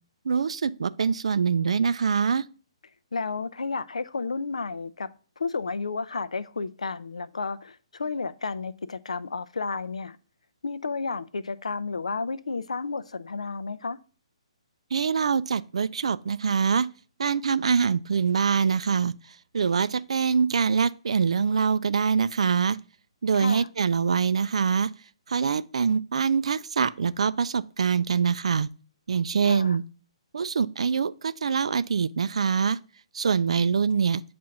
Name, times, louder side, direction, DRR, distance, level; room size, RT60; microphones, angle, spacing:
voice 1, 0.3-2.5 14.9-16.9 17.2-19.1 19.5-22.8 23.2-24.9 25.3-28.7 29.1-29.8 30.3-32.8 33.1-34.2, right 6 dB, 70° right, 0.4 m, -24 dB
voice 2, 3.1-5.1 5.4-10.2 10.6-14.0 23.3-23.7 29.4-29.8, left 4 dB, 85° left, 0.4 m, -32 dB
7.2 x 2.5 x 5.7 m
hypercardioid pair, 140°, 3 cm